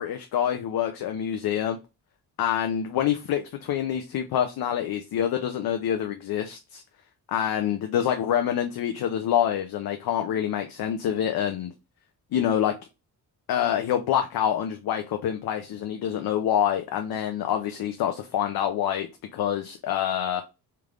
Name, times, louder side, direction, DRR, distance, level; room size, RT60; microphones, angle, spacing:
voice 1, 0.0-1.8 2.4-6.8 7.3-11.7 12.3-12.7 13.5-20.4, left 10 dB, 65° left, 0.6 m, -26 dB
3.4 x 3.3 x 2.4 m
cardioid pair, 90°, 39 cm